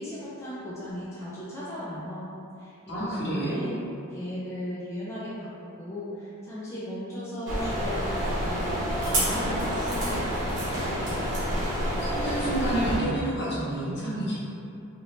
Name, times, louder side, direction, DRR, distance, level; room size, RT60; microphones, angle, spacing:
voice 1, 0.0-2.3 2.6-3.8 4.1-11.0, equal, 15° left, -9 dB, 0.4 m, -37 dB
voice 2, 2.9-3.6 12.1-14.4, right 1 dB, 55° left, -8 dB, 0.9 m, -29 dB
sound 1, 7.5-13.0, equal, 55° right, 1.0 m, -28 dB
3.2 x 2.7 x 2.7 m, 2.7 s
head